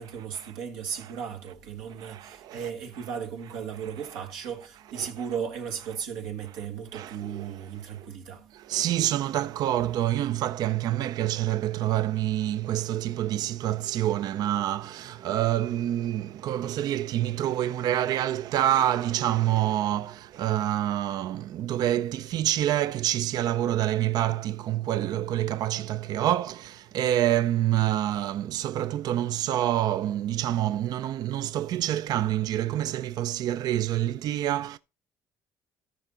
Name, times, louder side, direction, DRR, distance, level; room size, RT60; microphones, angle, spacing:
voice 1, 0.0-8.5, right 7 dB, 90° right, 1.3 m, -36 dB
voice 2, 2.0-2.7 4.1-4.2 4.9-5.3 6.9-7.7 8.0-8.1 8.5-34.8, right 12 dB, 65° right, 0.4 m, -27 dB
13.5 x 5.8 x 3.7 m
supercardioid pair, 80°, 7 cm